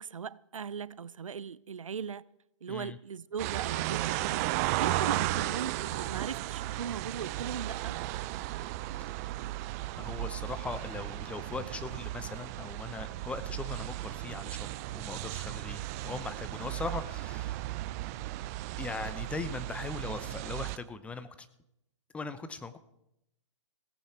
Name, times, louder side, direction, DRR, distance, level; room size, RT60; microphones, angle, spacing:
voice 1, 0.0-2.2 2.6-4.4 4.8-8.0, right 7 dB, 90° right, 0.5 m, -38 dB
voice 2, 2.7-3.0 10.0-17.7 18.8-21.5 22.1-22.8, left 4 dB, 5° left, 0.7 m, -40 dB
sound 1, 3.4-20.8, right 16 dB, 30° right, 0.5 m, -35 dB
17.0 x 14.5 x 4.5 m
hypercardioid pair, 135°, 16 cm